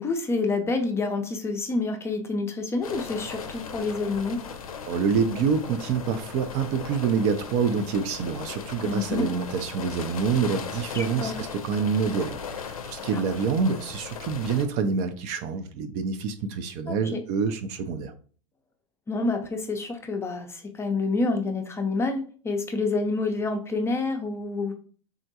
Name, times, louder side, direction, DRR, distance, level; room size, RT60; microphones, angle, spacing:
voice 1, 0.0-4.4 8.8-9.3 10.9-11.3 13.1-13.2 16.9-17.2 19.1-24.7, left 3 dB, 15° left, 5 dB, 0.5 m, -28 dB
sound 1, 2.8-14.7, left 6 dB, 85° left, 0.5 m, -38 dB
voice 2, 4.9-12.4 12.7-18.1, right 5 dB, 45° right, 10 dB, 0.4 m, -26 dB
3.6 x 2.1 x 2.7 m, 0.41 s
hypercardioid pair, 105°, 18 cm